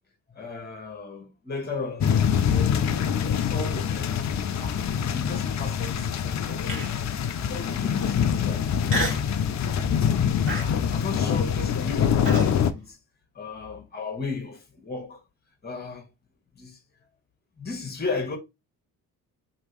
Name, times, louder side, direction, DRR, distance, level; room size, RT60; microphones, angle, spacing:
voice 1, 0.3-4.2 4.6-4.9 5.1-7.1 7.5-8.7 10.5-13.0 13.3-15.2 15.6-16.1 16.6-16.8 17.6-18.4, left 3 dB, 20° left, 1.2 m, -35 dB
sound 1, 2.0-12.7, left 8 dB, 35° left, 0.5 m, -25 dB
Human voice, 6.7-7.1 7.7-7.8 8.9-9.3 9.8-10.1 10.5-12.5, right 1 dB, 25° right, 1.8 m, -31 dB
3.0 x 2.8 x 3.0 m
hypercardioid pair, 45°, 49 cm